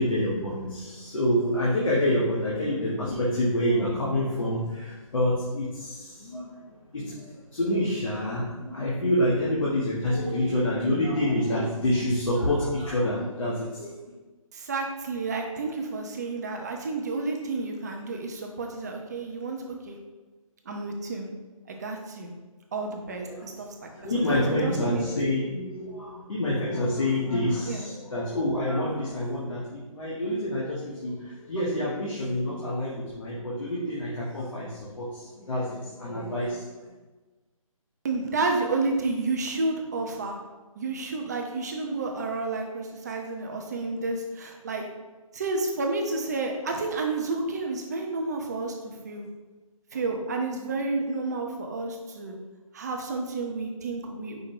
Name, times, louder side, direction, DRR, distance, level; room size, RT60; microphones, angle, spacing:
voice 1, 0.0-13.9 23.2-23.5 23.9-36.7, left 1 dB, 65° left, -7 dB, 1.2 m, -27 dB
voice 2, 14.5-20.0 20.6-21.3 21.7-22.3 22.7-25.1 27.7-27.9 38.0-40.4 40.8-44.8 45.3-49.3 49.9-52.4 52.7-54.4, right 3 dB, 30° right, 2 dB, 0.5 m, -30 dB
5.1 x 2.2 x 4.7 m, 1.3 s
figure-of-eight pair, 155°, 18 cm